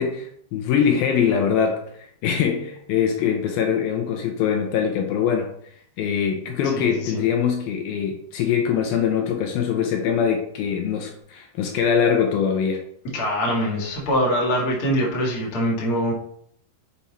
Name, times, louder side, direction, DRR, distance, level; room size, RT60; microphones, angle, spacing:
voice 1, 0.0-1.9 2.2-5.5 6.0-12.8, left 7 dB, 80° left, 4 dB, 2.3 m, -23 dB
voice 2, 6.7-7.2 13.1-16.1, equal, 45° left, -3 dB, 2.1 m, -23 dB
7.2 x 4.4 x 4.2 m, 0.66 s
omnidirectional pair, 4.8 m